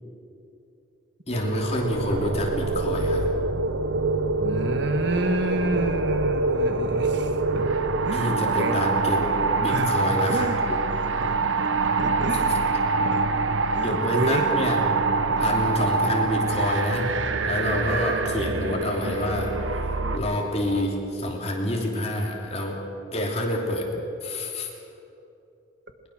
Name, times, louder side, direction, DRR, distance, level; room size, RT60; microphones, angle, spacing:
voice 1, 1.3-3.3 8.1-10.8 13.8-14.8 15.4-22.8 23.1-23.9 24.2-24.7, left 1 dB, 30° left, 0 dB, 2.9 m, -28 dB
sound 1, 1.3-20.2, right 3 dB, 80° right, 1.0 m, -25 dB
voice 2, 4.4-7.7 8.0-8.8 9.7-10.6 10.9-11.4 12.0-12.6 13.0-13.3 13.7-14.5 15.4-15.5, right 1 dB, 60° right, 7 dB, 1.5 m, -30 dB
20.5 x 20.5 x 6.6 m, 2.8 s
head